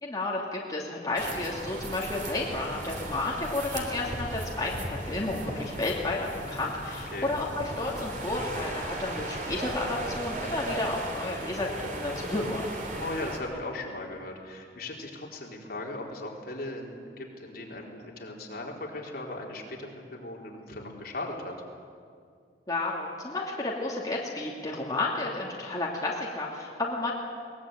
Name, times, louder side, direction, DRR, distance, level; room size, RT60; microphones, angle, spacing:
voice 1, 0.0-12.7 22.7-27.1, left 2 dB, 20° left, -4 dB, 2.8 m, -32 dB
sound 1, 1.2-13.4, right 1 dB, 50° right, 3.6 m, -36 dB
voice 2, 6.9-7.3 13.0-21.6, left 2 dB, 55° left, -1 dB, 4.1 m, -38 dB
22.0 x 20.0 x 9.0 m, 2.2 s
head